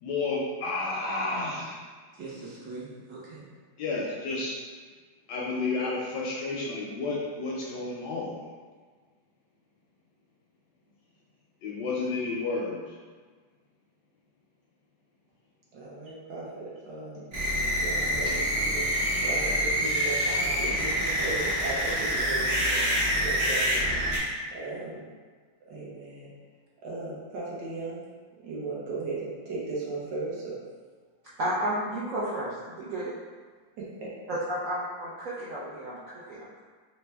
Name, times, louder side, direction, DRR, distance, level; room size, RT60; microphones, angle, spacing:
voice 1, 0.0-1.8 3.8-4.6 5.3-8.4 11.6-12.8 17.1-17.2 18.2-18.3, left 3 dB, 75° left, -3 dB, 1.0 m, -31 dB
voice 2, 2.2-3.5 15.7-17.3 17.7-22.8 23.2-23.8 24.5-25.1 25.7-26.3 26.8-28.0 28.4-30.6 34.0-34.1, right 3 dB, 65° right, -6 dB, 1.5 m, -37 dB
sound 1, 17.3-24.2, equal, 30° right, 0.5 m, -26 dB
voice 3, 31.4-33.1 34.3-36.6, right 1 dB, 85° right, -8 dB, 0.7 m, -32 dB
4.1 x 2.2 x 3.3 m, 1.5 s
omnidirectional pair, 2.1 m